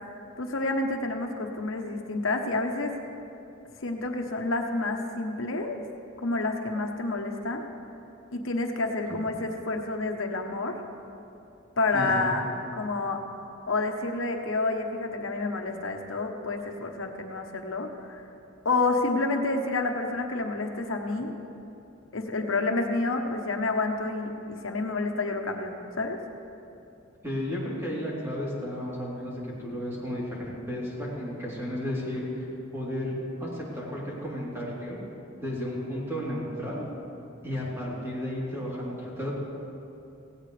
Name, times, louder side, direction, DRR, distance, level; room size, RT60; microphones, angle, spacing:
voice 1, 0.4-2.9 3.8-5.8 6.2-7.7 8.3-10.8 11.8-12.4 12.7-13.2 13.7-18.2 18.6-21.3 22.1-26.2, left 3 dB, 85° left, 3 dB, 1.1 m, -29 dB
voice 2, 11.9-12.3 27.2-33.1 33.4-35.0 35.4-36.9 37.4-39.3, equal, 15° right, -6 dB, 3.4 m, -33 dB
17.0 x 17.0 x 3.4 m, 2.8 s
head